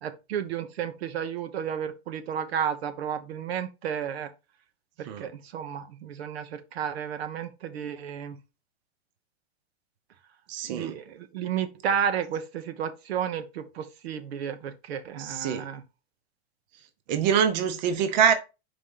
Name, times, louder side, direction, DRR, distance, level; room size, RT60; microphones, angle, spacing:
voice 1, 0.0-4.3 5.0-8.4 10.6-15.8, right 8 dB, 80° right, 1.0 m, -32 dB
voice 2, 10.5-10.9 15.2-15.6 17.1-18.3, right 8 dB, 45° right, 0.9 m, -24 dB
5.2 x 3.7 x 5.5 m
supercardioid pair, 165°, 31 cm